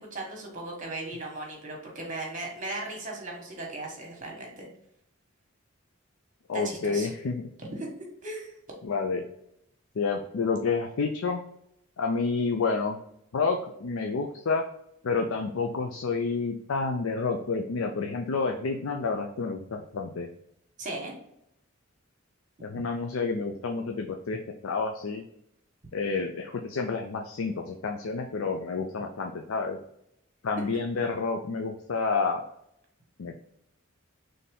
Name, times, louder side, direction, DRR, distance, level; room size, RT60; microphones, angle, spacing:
voice 1, 0.0-4.7 6.5-7.1 7.6-7.9 8.2-8.5 20.8-21.1 22.6-22.7, right 2 dB, 35° right, 0 dB, 1.3 m, -37 dB
voice 2, 6.5-7.5 8.8-9.2 10.0-11.4 12.0-13.0 13.3-14.7 15.0-20.3 22.6-25.2 25.9-29.8 30.4-32.4 33.2-33.4, left 4 dB, 75° left, 4 dB, 0.5 m, -29 dB
4.1 x 3.3 x 3.7 m, 0.76 s
head